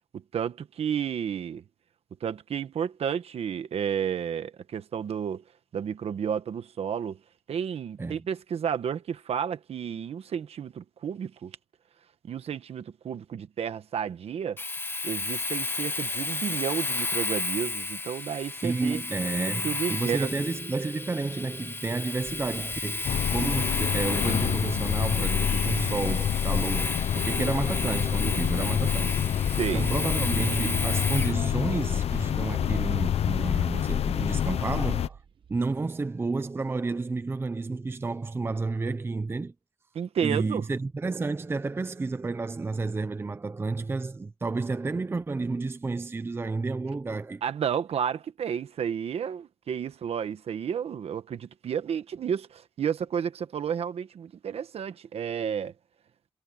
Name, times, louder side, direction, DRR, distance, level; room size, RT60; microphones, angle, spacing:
voice 1, 0.1-1.6 2.2-5.4 5.7-7.2 7.5-11.6 12.2-14.6 15.0-19.0 19.6-20.3 29.5-29.9 39.9-40.7 47.4-55.7, right 8 dB, 85° right, 1.1 m, -31 dB
Domestic sounds home sounds, 14.6-31.4, left 3 dB, 20° left, 0.9 m, -32 dB
voice 2, 18.6-29.2 29.6-35.2 35.5-39.5 40.2-47.4, right 3 dB, 25° right, 0.6 m, -31 dB
sound 1, 23.0-35.1, left 9 dB, 90° left, 0.6 m, -27 dB
sound 2, 35.2-35.8, right 7 dB, 55° right, 1.1 m, -48 dB
wide cardioid pair, 150°, 10 cm